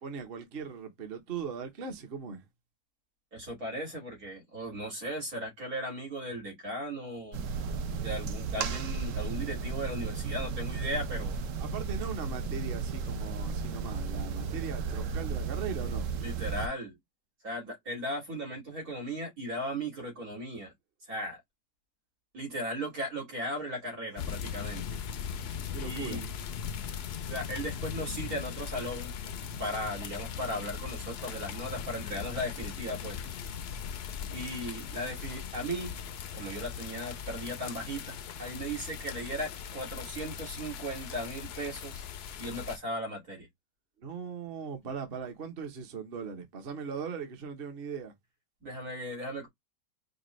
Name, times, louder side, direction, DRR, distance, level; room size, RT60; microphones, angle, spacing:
voice 1, 0.0-2.5 11.6-16.1 25.7-26.2 44.0-48.1, right 6 dB, 45° right, 1.0 m, -39 dB
voice 2, 3.3-7.5 8.0-11.4 16.2-17.0 17.4-20.7 21.1-21.4 22.3-25.0 25.8-26.3 27.2-29.1 29.6-33.2 34.3-35.9 36.3-42.0 42.4-43.5 48.6-49.5, equal, 85° right, 3.0 m, -37 dB
sound 1, 7.3-16.7, right 5 dB, 65° right, 1.0 m, -34 dB
sound 2, 24.2-42.8, left 7 dB, 60° left, 0.7 m, -39 dB
5.1 x 2.3 x 3.1 m
omnidirectional pair, 1.5 m